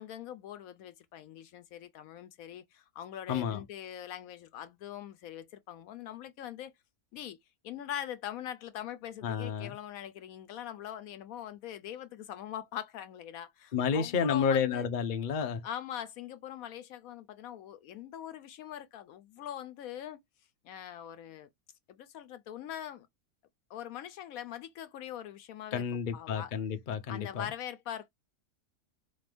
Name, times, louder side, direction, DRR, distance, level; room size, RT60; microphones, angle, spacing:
voice 1, 0.0-6.7 7.1-7.4 7.6-14.9 15.6-20.2 20.6-21.5 21.9-23.1 23.7-25.9 26.1-26.5 27.1-28.1, left 10 dB, 75° left, 1.0 m, -42 dB
voice 2, 3.3-3.6 9.2-9.8 13.7-15.6 25.7-27.5, left 6 dB, 45° left, 0.6 m, -30 dB
4.1 x 2.5 x 3.4 m
omnidirectional pair, 1.6 m